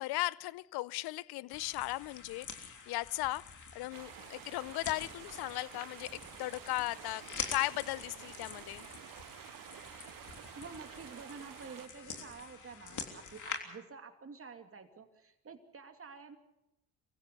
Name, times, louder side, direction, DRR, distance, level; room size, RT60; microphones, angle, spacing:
voice 1, 0.0-8.9, left 19 dB, 70° left, 0.6 m, -37 dB
sound 1, 1.5-13.6, left 5 dB, 50° left, 3.4 m, -46 dB
sound 2, 3.9-11.9, right 15 dB, 55° right, 0.6 m, -51 dB
voice 2, 10.5-16.4, right 5 dB, 35° right, 2.7 m, -49 dB
25.0 x 15.5 x 6.8 m
supercardioid pair, 70°, 40 cm